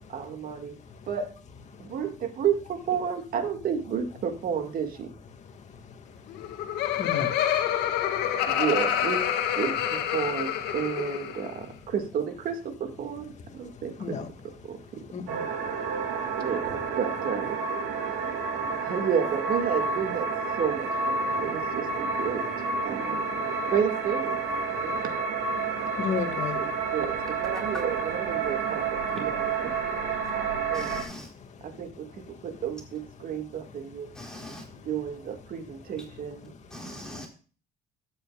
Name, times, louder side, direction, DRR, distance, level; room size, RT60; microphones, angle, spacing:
voice 1, 0.1-0.8 1.1-1.3 1.8-5.1 8.5-9.3 9.6-15.0 16.4-17.6 18.8-20.3 20.6-23.4 23.7-24.4 24.8-25.1 26.5-30.9 31.6-34.1 34.8-36.5, right 7 dB, 60° right, 2.0 m, -32 dB
Laughter, 6.3-11.5, left 10 dB, 80° left, 1.8 m, -27 dB
voice 2, 6.9-7.3 14.0-14.3 15.1-15.4 15.7-16.0 25.9-26.6, left 7 dB, 45° left, 2.1 m, -32 dB
sound 1, 15.3-31.0, right 4 dB, 85° right, 2.8 m, -30 dB
voice 3, 30.7-31.3 34.2-34.6 36.7-37.3, left 1 dB, 5° left, 4.1 m, -41 dB
12.5 x 9.5 x 2.4 m
cardioid pair, 110°, 17 cm